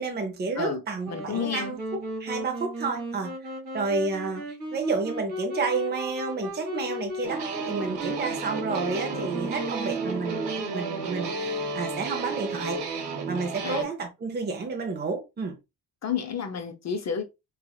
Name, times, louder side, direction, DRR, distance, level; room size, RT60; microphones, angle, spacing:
voice 1, 0.0-3.3 3.7-12.8 13.3-15.6, right 4 dB, 25° right, 0.7 m, -30 dB
Wind instrument woodwind instrument, 1.0-11.9, equal, 60° right, 2.4 m, -36 dB
voice 2, 1.1-1.8 13.6-13.9 16.0-17.2, left 7 dB, 40° left, 0.7 m, -30 dB
sound 1, 7.2-13.8, right 3 dB, 85° right, 1.1 m, -32 dB
5.4 x 2.5 x 2.3 m
wide cardioid pair, 170°, 41 cm